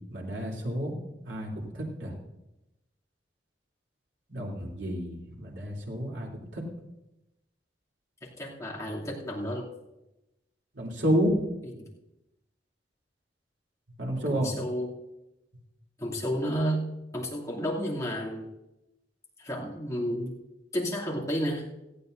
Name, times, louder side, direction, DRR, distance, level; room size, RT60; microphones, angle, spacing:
voice 1, 0.1-1.0 1.2-2.1 4.3-6.6 10.7-11.3 14.0-14.5, equal, 80° right, -3 dB, 3.2 m, -30 dB
voice 2, 8.2-9.7 11.8-11.9 14.3-14.9 16.0-16.8 17.1-18.5 19.4-20.3 20.7-21.7, equal, 15° left, -5 dB, 2.8 m, -31 dB
18.0 x 15.0 x 2.7 m, 0.94 s
head